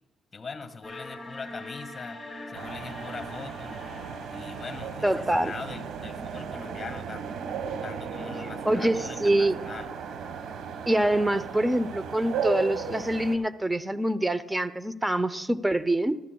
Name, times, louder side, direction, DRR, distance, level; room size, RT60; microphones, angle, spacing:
voice 1, 0.3-2.2 2.5-3.8 4.3-7.4 7.8-9.9, left 4 dB, 30° left, 9 dB, 1.8 m, -41 dB
sound 1, 0.8-7.8, left 2 dB, 15° left, 4.3 m, -44 dB
sound 2, 2.5-13.4, right 6 dB, 75° right, 1.3 m, -35 dB
voice 2, 5.0-5.5 8.6-9.6 10.9-16.2, right 1 dB, 10° right, 14 dB, 0.7 m, -25 dB
25.0 x 13.5 x 2.3 m, 1.0 s
cardioid pair, 90°, 0 cm